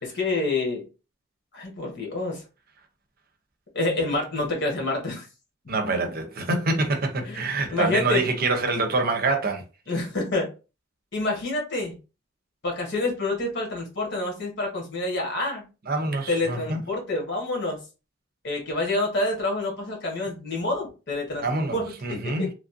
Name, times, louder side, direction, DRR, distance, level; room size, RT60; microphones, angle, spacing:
voice 1, 0.0-0.8 1.5-2.4 3.7-5.3 7.2-8.2 9.9-10.5 11.1-12.0 12.6-15.6 16.3-17.8 18.4-21.4 21.7-22.5, left 2 dB, 65° left, 1.4 m, -27 dB
voice 2, 5.7-9.6 15.9-16.8 21.4-22.5, right 3 dB, 50° right, 0.7 m, -26 dB
3.1 x 2.5 x 2.5 m
head